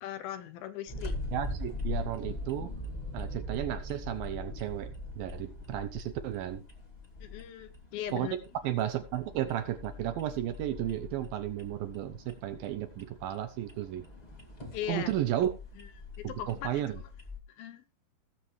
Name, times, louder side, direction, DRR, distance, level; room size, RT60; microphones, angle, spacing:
voice 1, 0.0-1.2 7.2-8.3 14.7-15.1 16.2-17.0 17.5-17.8, left 11 dB, 75° left, 2.4 m, -39 dB
sound 1, 0.9-17.4, left 2 dB, 25° left, 0.9 m, -41 dB
voice 2, 1.3-2.7 3.1-4.9 5.2-6.6 8.1-8.3 8.6-14.0 14.9-15.5 16.2-17.0, right 12 dB, 75° right, 2.3 m, -33 dB
18.0 x 7.6 x 3.2 m
omnidirectional pair, 4.7 m